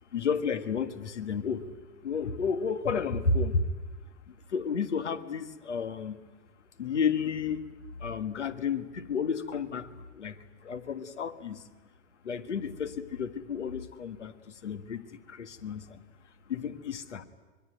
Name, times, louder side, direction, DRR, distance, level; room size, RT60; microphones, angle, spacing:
voice 1, 0.1-1.7 2.0-3.6 4.5-6.2 6.8-7.7 8.0-9.9 10.1-10.4 10.6-11.6 12.2-14.3 14.6-15.0 15.3-16.0 16.5-17.2, left 5 dB, 80° left, 10 dB, 1.7 m, -31 dB
25.0 x 22.0 x 9.4 m, 1.3 s
hypercardioid pair, 95°, 35 cm